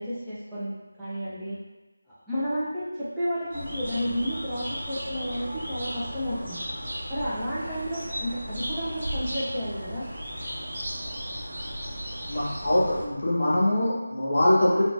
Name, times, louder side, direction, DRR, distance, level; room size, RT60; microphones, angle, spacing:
voice 1, 0.0-1.6 2.1-6.6 7.1-10.1, equal, 5° right, -15 dB, 0.3 m, -32 dB
sound 1, 3.5-13.1, equal, 35° right, 0.8 m, -35 dB
voice 2, 12.3-14.8, left 1 dB, 50° left, -6 dB, 1.0 m, -23 dB
3.6 x 2.2 x 2.3 m, 1.1 s
figure-of-eight pair, 170°, 0 cm